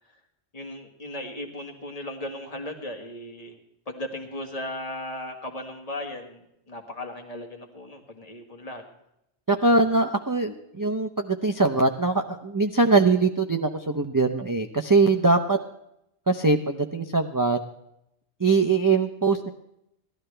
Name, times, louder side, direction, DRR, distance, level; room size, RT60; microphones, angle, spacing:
voice 1, 0.5-3.6 3.9-8.8, left 1 dB, 35° left, 3 dB, 1.8 m, -36 dB
voice 2, 9.5-15.6 16.3-17.6 18.4-19.5, right 3 dB, 20° right, 4 dB, 0.6 m, -22 dB
18.5 x 12.5 x 3.3 m, 0.80 s
omnidirectional pair, 1.2 m